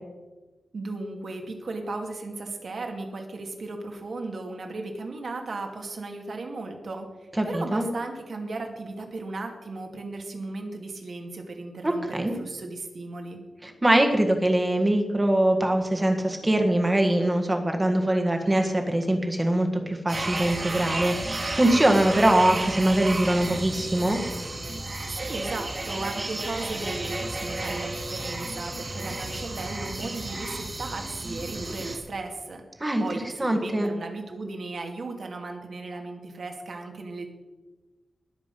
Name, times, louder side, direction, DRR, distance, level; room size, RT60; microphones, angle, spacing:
voice 1, 0.7-13.4 25.1-32.6 33.0-37.3, right 3 dB, 55° right, 3 dB, 2.2 m, -36 dB
voice 2, 7.4-7.9 11.8-12.3 13.6-24.2 32.8-33.0 33.4-33.9, right 1 dB, 15° right, 3 dB, 1.7 m, -23 dB
sound 1, 20.1-32.0, right 2 dB, 35° right, 2.2 m, -32 dB
20.5 x 7.6 x 5.4 m, 1.2 s
wide cardioid pair, 165°, 0 cm